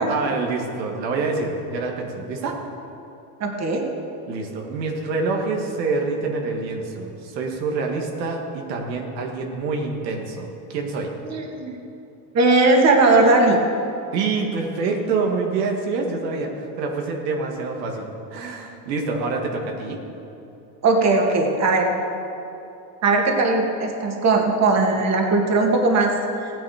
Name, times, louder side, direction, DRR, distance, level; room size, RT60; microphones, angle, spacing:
voice 1, 0.0-2.6 4.3-11.1 14.1-20.0, right 4 dB, 85° right, 1 dB, 1.9 m, -26 dB
voice 2, 3.4-3.9 11.2-11.8 12.3-13.6 20.8-21.9 23.0-26.5, right 3 dB, 30° right, 1 dB, 2.0 m, -18 dB
15.5 x 10.0 x 4.9 m, 2.8 s
supercardioid pair, 115°, 49 cm